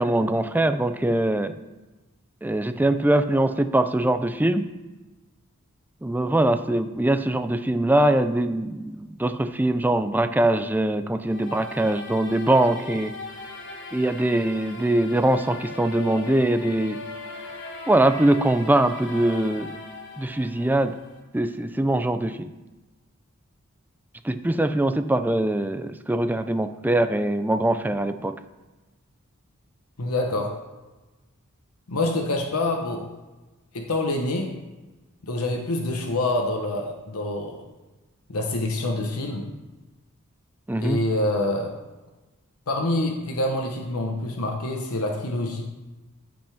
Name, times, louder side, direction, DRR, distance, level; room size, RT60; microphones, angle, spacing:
voice 1, 0.0-1.5 2.4-4.7 6.0-13.1 13.9-17.0 17.9-19.8 20.2-20.9 21.3-22.5 24.2-28.4 40.7-41.0, right 1 dB, 10° right, 10 dB, 0.4 m, -22 dB
sound 1, 11.2-21.2, left 2 dB, 55° left, 1.4 m, -39 dB
voice 2, 30.0-30.5 31.9-33.1 33.7-34.5 35.2-37.6 38.3-39.5 40.8-41.7 42.7-45.6, left 2 dB, 90° left, 2 dB, 1.0 m, -26 dB
15.0 x 5.2 x 3.5 m, 1.1 s
head